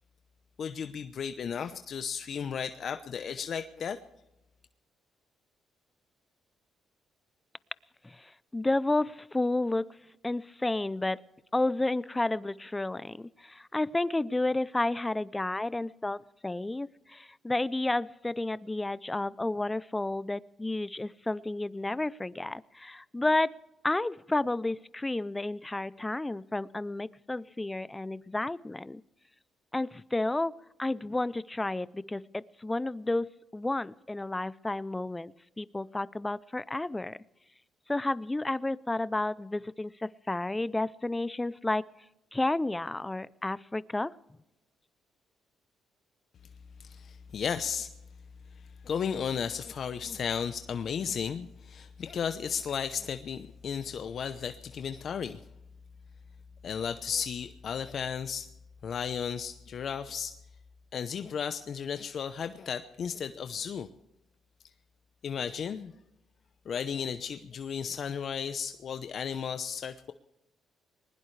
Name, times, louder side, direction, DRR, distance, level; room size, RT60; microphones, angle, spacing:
voice 1, 0.6-4.0 46.8-47.9 48.8-55.4 56.6-58.5 58.8-60.4 60.9-63.9 65.2-65.9 66.7-70.1, left 7 dB, 55° left, 10 dB, 0.8 m, -34 dB
voice 2, 8.0-10.0 10.2-11.2 11.5-23.5 23.8-29.0 29.7-37.2 37.9-41.8 42.3-44.1, left 2 dB, 15° left, 19 dB, 0.5 m, -31 dB
20.5 x 20.0 x 3.3 m, 0.92 s
cardioid pair, 90°, 0 cm